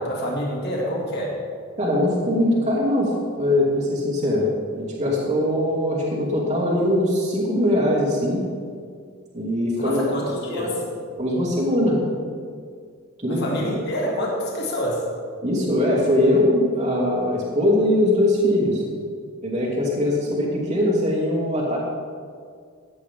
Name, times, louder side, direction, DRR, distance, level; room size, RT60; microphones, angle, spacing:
voice 1, 0.0-1.4 9.8-10.8 13.4-15.0, equal, 50° left, -3 dB, 2.4 m, -27 dB
voice 2, 1.8-8.5 9.3-10.1 10.5-10.7 11.2-12.0 13.2-13.4 15.4-18.8 19.4-21.8, left 1 dB, 30° right, -8 dB, 2.6 m, -21 dB
15.0 x 9.8 x 3.6 m, 2.1 s
head